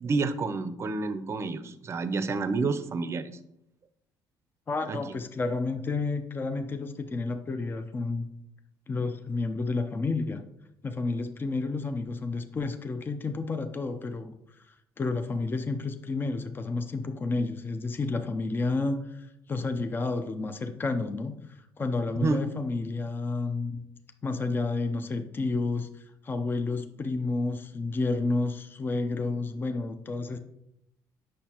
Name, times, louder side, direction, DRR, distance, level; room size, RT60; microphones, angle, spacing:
voice 1, 0.0-3.3 4.9-5.0 22.2-22.4, right 4 dB, 35° right, 12 dB, 0.6 m, -29 dB
voice 2, 4.7-8.3 8.9-10.4 10.8-14.6 15.0-23.8 24.2-30.4, left 3 dB, 25° left, 7 dB, 0.6 m, -30 dB
8.2 x 6.4 x 2.9 m, 0.80 s
cardioid pair, 110°, 8 cm